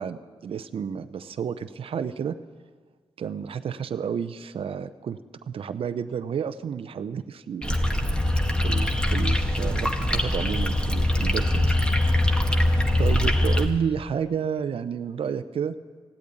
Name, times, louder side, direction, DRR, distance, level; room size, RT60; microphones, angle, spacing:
voice 1, 0.0-2.4 3.2-7.8 8.6-12.3 13.0-15.8, right 7 dB, 65° right, 11 dB, 0.6 m, -31 dB
sound 1, 7.6-13.7, left 1 dB, 10° left, 1.7 m, -23 dB
15.5 x 8.5 x 9.7 m, 1.5 s
cardioid pair, 50°, 10 cm